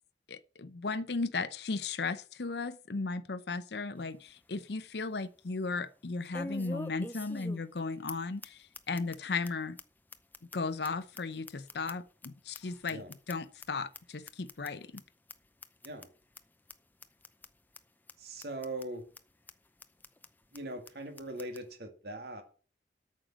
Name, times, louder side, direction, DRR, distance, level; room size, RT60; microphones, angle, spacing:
voice 1, 0.3-9.8 10.5-15.0, left 4 dB, 65° left, 0.7 m, -36 dB
sound 1, 4.0-4.1 4.5-4.6 6.3-7.8 8.1-8.2 8.4-8.5 8.7-9.2 9.4-9.5 9.8-9.9 10.1-12.3 12.5-13.7 13.9-14.0 14.3-14.7 15.0-15.1 15.3-15.4 15.6-16.1 16.4-16.5 16.7-16.8 17.0-17.5 17.7-17.8 18.1-18.2 18.4-18.9 19.2-19.3 19.5-19.6 19.8-20.3 20.5-20.6 20.9-21.0 21.2-21.6, left 2 dB, 10° left, 0.6 m, -44 dB
voice 2, 18.2-19.0 20.5-22.4, right 1 dB, 60° right, 2.2 m, -41 dB
8.9 x 6.6 x 7.5 m
head